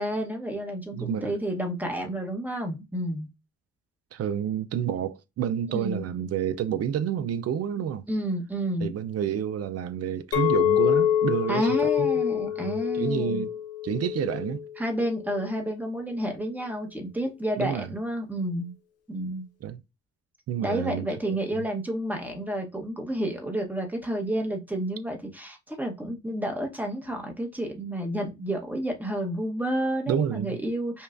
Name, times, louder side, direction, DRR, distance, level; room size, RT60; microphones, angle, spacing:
voice 1, 0.0-3.3 5.7-6.0 8.1-8.9 11.5-13.5 14.8-18.7 19.1-19.5 20.6-31.0, right 1 dB, 5° right, 1.0 m, -30 dB
voice 2, 0.9-1.3 4.1-8.1 8.8-12.1 12.6-13.5 13.8-14.6 17.6-17.9 19.6-19.8 20.5-21.6 30.1-30.6, right 9 dB, 55° right, 0.5 m, -29 dB
Chink clink, 10.3-15.5, left 10 dB, 55° left, 0.8 m, -26 dB
5.3 x 2.3 x 2.5 m
cardioid pair, 90°, 30 cm